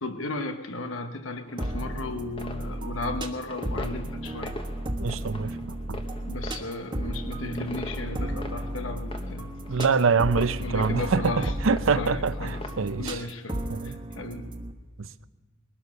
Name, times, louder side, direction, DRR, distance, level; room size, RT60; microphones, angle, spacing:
voice 1, 0.0-4.6 6.3-9.5 10.6-11.5 11.9-12.6 13.0-13.6 14.2-14.5, left 2 dB, 80° left, 1.1 m, -35 dB
sound 1, 1.5-13.3, left 1 dB, 25° left, 1.1 m, -43 dB
sound 2, 1.6-14.7, right 1 dB, 25° right, 1.2 m, -34 dB
voice 2, 5.0-5.5 5.9-6.0 9.7-13.2 13.7-14.0, right 5 dB, 85° right, 0.6 m, -25 dB
21.0 x 12.5 x 5.4 m
head